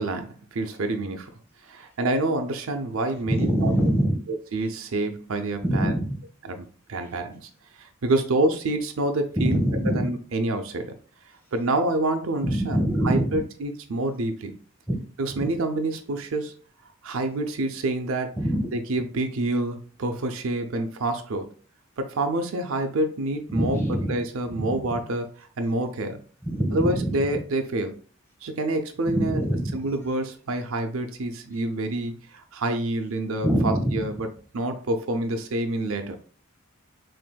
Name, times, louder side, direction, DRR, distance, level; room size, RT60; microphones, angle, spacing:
voice 1, 0.0-1.3 1.7-3.7 4.5-5.9 6.4-7.5 7.8-9.6 9.8-10.9 11.5-14.5 15.2-16.5 17.0-18.4 18.7-21.5 22.0-23.8 24.1-25.3 25.6-26.2 26.7-28.0 28.4-29.4 29.7-34.3 34.5-36.2, right 2 dB, 75° right, 6 dB, 0.6 m, -27 dB
voice 2, 3.3-4.2 5.6-6.2 9.4-10.1 12.4-13.4 14.9-15.0 15.4-15.5 18.4-18.7 23.5-24.1 24.6-24.7 26.4-27.2 29.1-29.7 33.4-34.1, right 1 dB, 10° left, -1 dB, 1.2 m, -24 dB
6.0 x 2.6 x 2.2 m, 0.41 s
head